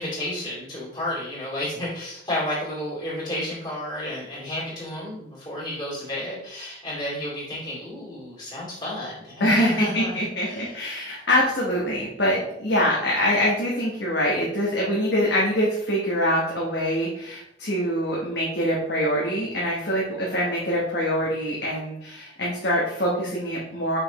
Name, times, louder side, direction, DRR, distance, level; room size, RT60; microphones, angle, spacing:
voice 1, 0.0-10.2 10.4-10.7, left 1 dB, 20° left, -6 dB, 2.4 m, -31 dB
voice 2, 9.4-24.0, equal, 55° left, -4 dB, 1.1 m, -24 dB
5.8 x 5.6 x 3.0 m, 0.80 s
head